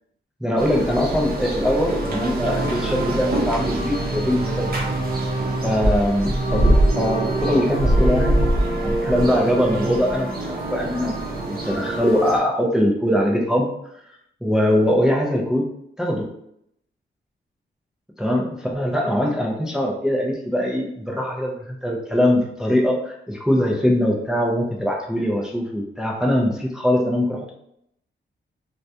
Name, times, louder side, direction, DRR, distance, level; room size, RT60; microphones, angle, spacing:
voice 1, 0.4-4.7 5.6-8.4 8.8-11.2 11.5-13.7 14.4-15.7 16.0-16.3 18.2-27.5, equal, 5° right, 0 dB, 0.4 m, -22 dB
sound 1, 0.6-12.4, right 1 dB, 50° right, 0.6 m, -23 dB
2.3 x 2.2 x 2.7 m, 0.75 s
wide cardioid pair, 95°, 20 cm